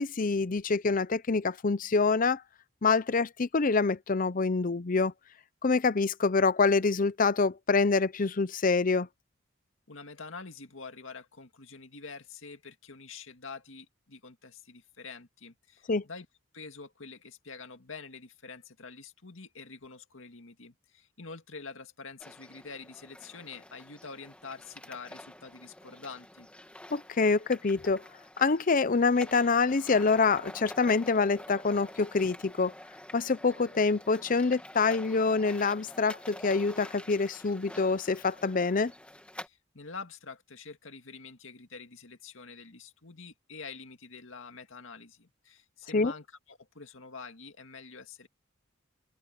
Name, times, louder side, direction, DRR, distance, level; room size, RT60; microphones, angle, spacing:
voice 1, 0.0-2.4 2.8-5.1 5.6-9.1 15.9-16.0 26.9-28.0 28.4-32.7 33.1-38.9 45.9-46.1, left 4 dB, 45° left, 0.6 m, -26 dB
voice 2, 9.9-16.3 16.5-26.5 39.4-48.3, left 4 dB, 80° left, 2.1 m, -46 dB
sound 1, 22.2-39.5, left 1 dB, 5° left, 1.8 m, -48 dB
open air
head